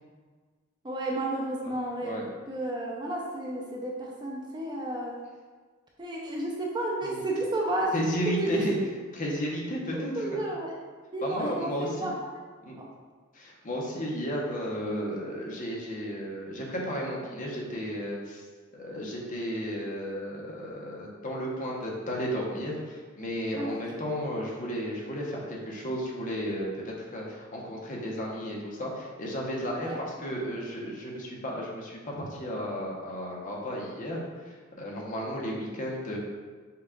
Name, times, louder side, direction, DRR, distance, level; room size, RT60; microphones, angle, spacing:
voice 1, 0.8-2.2 2.5-5.2 6.0-8.0 8.3-8.7 9.9-10.7 11.1-12.2 12.8-12.9 23.6-23.8 29.8-30.0, right 1 dB, 20° right, -2 dB, 0.5 m, -32 dB
voice 2, 7.9-8.8 9.1-10.4 11.2-12.1 12.6-12.8 13.3-18.4 18.7-34.2 34.5-36.2, equal, 40° left, -2 dB, 0.9 m, -33 dB
5.6 x 2.4 x 3.7 m, 1.5 s
head